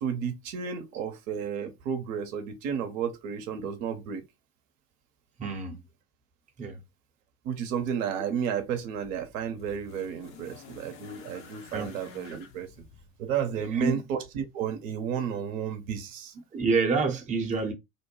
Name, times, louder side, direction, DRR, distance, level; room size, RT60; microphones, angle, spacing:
voice 1, 0.0-4.2 7.4-12.7 13.2-16.3, right 8 dB, 55° right, 0.7 m, -32 dB
voice 2, 5.4-5.8 6.6-6.8 11.7-11.9 13.7-13.9 16.5-17.7, right 4 dB, 15° right, 0.7 m, -27 dB
sound 1, 8.6-13.8 14.8-14.9, left 6 dB, 45° left, 0.8 m, -51 dB
2.6 x 2.1 x 3.1 m
figure-of-eight pair, 65°, 47 cm